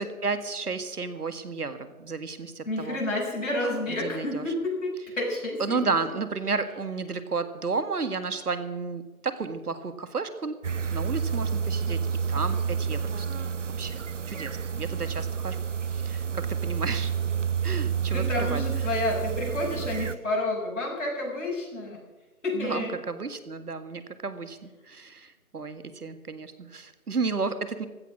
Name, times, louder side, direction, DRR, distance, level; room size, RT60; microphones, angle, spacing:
voice 1, 0.0-3.0 3.9-4.5 5.6-10.6 10.9-12.0 12.3-13.3 13.8-17.1 17.6-18.6 22.5-27.9, right 4 dB, 80° right, 10 dB, 1.8 m, -32 dB
voice 2, 2.6-6.0 18.1-22.0 22.4-22.9, left 2 dB, 55° left, -3 dB, 6.8 m, -30 dB
sound 1, 10.6-20.2, right 7 dB, 55° right, 0.6 m, -29 dB
16.0 x 12.5 x 6.2 m, 1.1 s
figure-of-eight pair, 175°, 45 cm